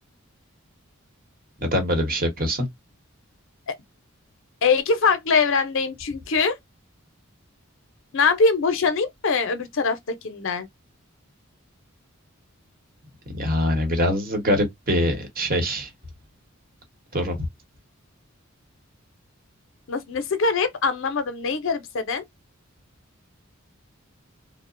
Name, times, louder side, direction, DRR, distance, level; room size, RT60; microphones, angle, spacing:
voice 1, 1.6-2.7 13.3-15.9 17.1-17.5, equal, 45° right, 1.0 m, -23 dB
voice 2, 4.6-6.6 8.1-10.0 10.2-10.7 19.9-22.2, left 4 dB, 70° left, 0.6 m, -22 dB
2.9 x 2.0 x 2.4 m
head